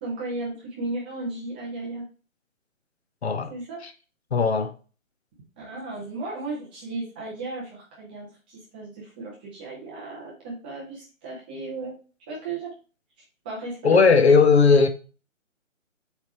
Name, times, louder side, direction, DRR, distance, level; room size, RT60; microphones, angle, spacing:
voice 1, 0.0-2.0 3.5-3.8 5.6-12.0 12.3-12.7 13.4-14.1, right 2 dB, 5° right, 0.6 m, -35 dB
voice 2, 4.3-4.7 13.8-14.9, left 5 dB, 55° left, 1.2 m, -17 dB
8.0 x 3.5 x 4.5 m
figure-of-eight pair, 145°, 40 cm